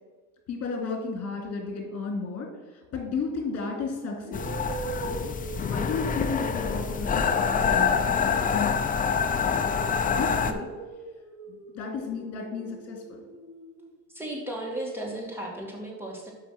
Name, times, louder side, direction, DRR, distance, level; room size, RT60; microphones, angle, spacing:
voice 1, 0.5-2.5 2.7-4.5 5.7-9.7 10.0-10.7 11.5-13.2, left 4 dB, 45° left, 1 dB, 2.7 m, -34 dB
sound 1, 3.1-3.4 4.2-9.5 9.9-13.9, right 4 dB, 65° right, 1.9 m, -43 dB
sound 2, 4.3-10.5, left 6 dB, 25° left, 0.6 m, -26 dB
voice 2, 14.1-16.3, right 1 dB, 5° right, -2 dB, 2.4 m, -35 dB
5.9 x 5.9 x 6.0 m, 1.4 s
supercardioid pair, 110°, 35 cm